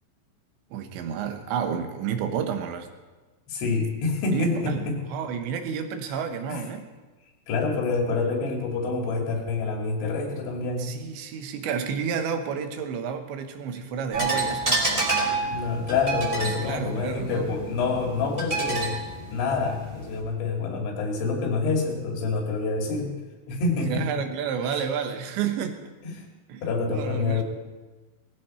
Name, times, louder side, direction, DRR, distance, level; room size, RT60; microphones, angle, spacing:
voice 1, 0.7-2.9 4.3-6.8 10.8-15.1 16.4-17.5 23.9-25.9 26.5-26.6 26.9-27.4, right 7 dB, 85° right, 6 dB, 3.4 m, -30 dB
voice 2, 3.5-5.0 6.5-6.6 7.5-10.9 15.5-19.0 19.3-23.1 23.5-24.1 24.7-24.8 26.0-26.3 26.6-27.4, left 4 dB, 85° left, 1 dB, 4.9 m, -27 dB
sound 1, 14.1-20.2, right 2 dB, 15° right, 3.4 m, -29 dB
19.0 x 15.5 x 4.4 m, 1.2 s
omnidirectional pair, 5.2 m